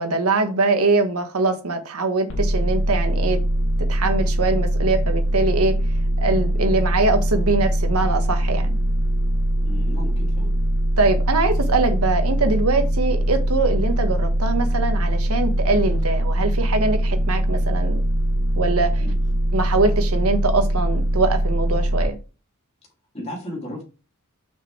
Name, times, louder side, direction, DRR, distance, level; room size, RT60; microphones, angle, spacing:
voice 1, 0.0-3.4 3.9-5.8 6.2-8.7 11.0-18.0 18.6-19.1 19.5-22.2, right 3 dB, 75° right, 1.5 m, -22 dB
sound 1, 2.3-22.0, right 1 dB, 65° left, 2.2 m, -22 dB
voice 2, 9.6-10.5 19.0-19.1 23.1-23.8, left 1 dB, 30° left, 2.9 m, -34 dB
6.8 x 6.3 x 3.4 m
head